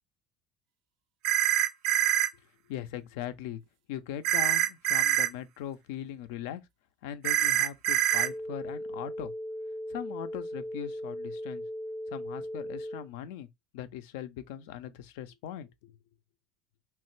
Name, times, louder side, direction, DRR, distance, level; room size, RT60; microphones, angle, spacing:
sound 1, 1.2-2.3 4.2-5.3 7.2-8.3, right 13 dB, 70° right, 0.3 m, -25 dB
voice 1, 2.7-3.6 3.9-6.6 7.0-9.3 9.9-11.6 12.1-13.5 13.7-15.9, left 10 dB, 80° left, 0.4 m, -40 dB
sound 2, 8.1-13.1, equal, 5° left, 0.4 m, -38 dB
3.1 x 2.1 x 3.0 m
supercardioid pair, 85°, 0 cm